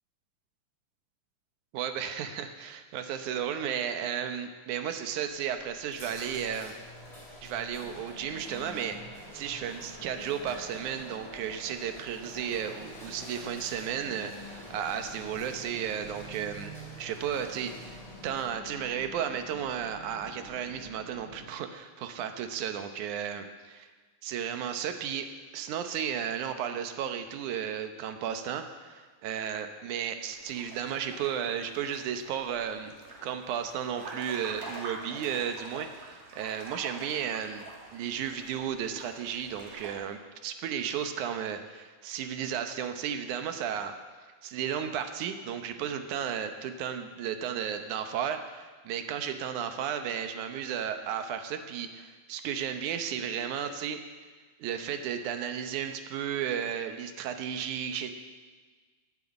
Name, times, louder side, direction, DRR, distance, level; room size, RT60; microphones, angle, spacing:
voice 1, 1.7-6.7 7.4-9.0 9.3-18.0 18.2-23.5 24.2-25.3 25.5-32.9 33.2-37.7 37.9-43.9 44.4-54.0 54.6-58.1, right 8 dB, 85° right, 7 dB, 2.4 m, -34 dB
sound 1, 5.4-18.8, left 1 dB, 15° left, 2.3 m, -49 dB
sound 2, 7.8-21.5, equal, 20° right, 5.3 m, -48 dB
sound 3, 30.3-40.0, right 3 dB, 65° right, 3.9 m, -46 dB
12.5 x 7.7 x 8.0 m, 1.4 s
omnidirectional pair, 3.4 m